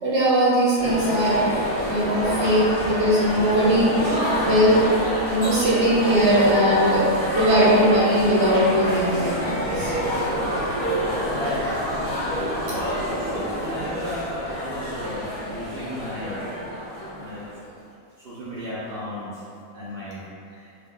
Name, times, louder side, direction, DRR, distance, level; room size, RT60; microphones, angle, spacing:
voice 1, 0.0-1.6 1.9-4.0 4.4-4.8 5.3-7.1 7.3-9.9, right 1 dB, 55° right, -8 dB, 0.9 m, -20 dB
sound 1, 0.8-17.6, equal, 15° right, 0.8 m, -27 dB
voice 2, 10.9-11.9 12.7-16.4 17.1-17.5 18.2-19.4 19.7-20.7, left 1 dB, 85° right, -9 dB, 0.5 m, -34 dB
2.4 x 2.1 x 3.7 m, 2.5 s
omnidirectional pair, 1.5 m